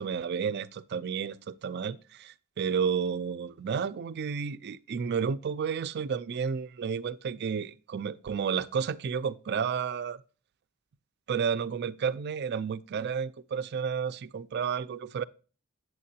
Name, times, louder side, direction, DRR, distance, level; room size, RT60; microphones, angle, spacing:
voice 1, 0.0-10.2 11.3-15.2, right 6 dB, 50° right, 0.4 m, -31 dB
8.0 x 7.5 x 2.8 m
head